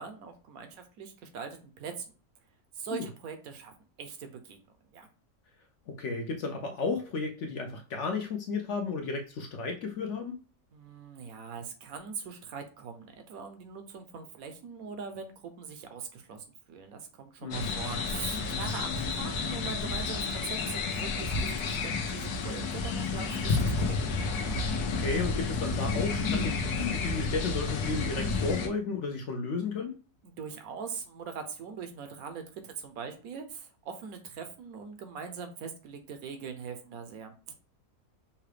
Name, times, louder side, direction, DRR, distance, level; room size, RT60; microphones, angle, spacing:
voice 1, 0.0-2.0 2.8-3.7 4.0-4.6 4.9-5.1 10.7-24.1 30.2-37.5, right 6 dB, 70° right, 7 dB, 1.1 m, -42 dB
voice 2, 5.9-10.4 17.4-17.8 24.9-30.0, left 4 dB, 65° left, 3 dB, 0.8 m, -33 dB
sound 1, 17.5-28.7, left 4 dB, 80° left, 1.3 m, -31 dB
5.6 x 2.3 x 3.3 m, 0.35 s
omnidirectional pair, 1.6 m